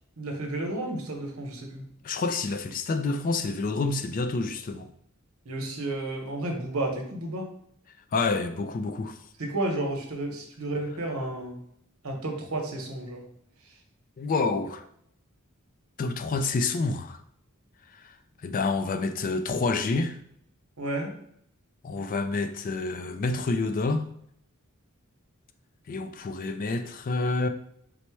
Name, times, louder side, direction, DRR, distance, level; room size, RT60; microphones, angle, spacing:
voice 1, 0.2-1.8 5.5-7.5 9.4-11.5 12.0-13.2 20.8-21.1, right 2 dB, 85° right, 0.9 m, -32 dB
voice 2, 2.0-4.9 8.1-9.2 14.2-14.8 16.0-17.2 17.9-18.1 18.4-20.2 21.8-24.1 25.9-27.5, left 3 dB, 40° left, 0.3 m, -28 dB
4.2 x 2.1 x 4.5 m
head